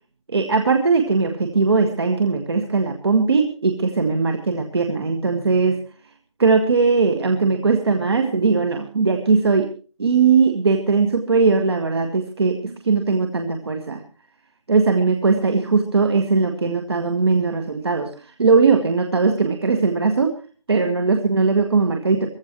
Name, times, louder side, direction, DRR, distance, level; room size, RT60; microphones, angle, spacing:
voice 1, 0.3-5.8 6.4-9.7 10.0-14.0 14.7-20.3 20.7-22.3, right 4 dB, 50° right, 6 dB, 1.8 m, -19 dB
22.0 x 16.0 x 3.1 m, 0.37 s
figure-of-eight pair, 160°, 17 cm